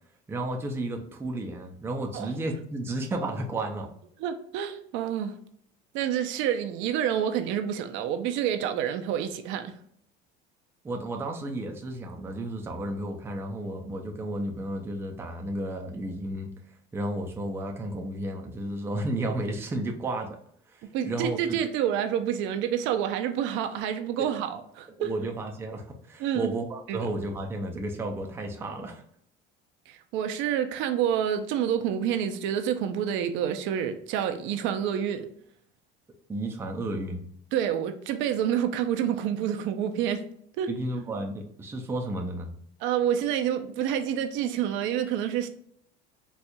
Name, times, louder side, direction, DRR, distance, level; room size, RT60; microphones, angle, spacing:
voice 1, 0.3-3.9 10.8-16.5 16.9-20.3 20.7-21.6 25.0-29.0 36.3-37.2 40.7-42.5, right 1 dB, 10° right, 0.4 m, -32 dB
voice 2, 4.2-5.3 5.9-9.7 20.9-25.1 26.2-26.5 26.9-27.1 29.9-35.3 37.5-40.2 40.6-40.7 42.8-45.5, right 9 dB, 65° right, 0.5 m, -28 dB
4.2 x 2.3 x 2.6 m
cardioid pair, 155°, 21 cm